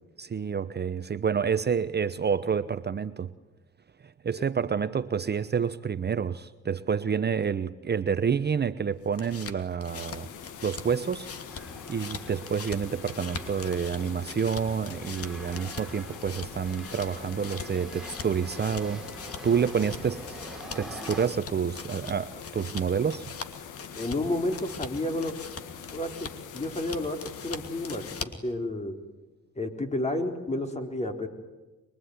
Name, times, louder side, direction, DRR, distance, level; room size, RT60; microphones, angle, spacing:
voice 1, 0.2-3.3 4.0-10.3 10.6-11.3 11.9-19.0 19.4-20.4 20.7-23.3, right 7 dB, 35° right, 12 dB, 0.9 m, -28 dB
sound 1, 8.9-28.5, left 5 dB, 50° left, 2.6 m, -43 dB
sound 2, 9.9-28.2, left 8 dB, 80° left, 1.9 m, -44 dB
sound 3, 11.1-21.3, right 1 dB, ahead, 4.5 m, -45 dB
voice 2, 23.9-25.3 25.9-29.0 29.6-31.3, left 1 dB, 20° left, 5 dB, 4.0 m, -31 dB
24.0 x 23.5 x 9.7 m, 1.1 s
cardioid pair, 90°, 30 cm